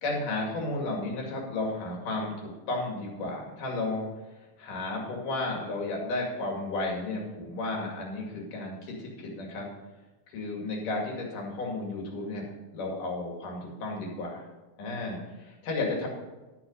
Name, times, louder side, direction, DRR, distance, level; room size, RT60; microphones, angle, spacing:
voice 1, 0.0-4.1 4.6-9.7 10.3-12.5 12.7-14.4 14.8-16.1, left 2 dB, 65° left, -1 dB, 3.8 m, -33 dB
12.0 x 7.1 x 5.2 m, 1.1 s
omnidirectional pair, 4.1 m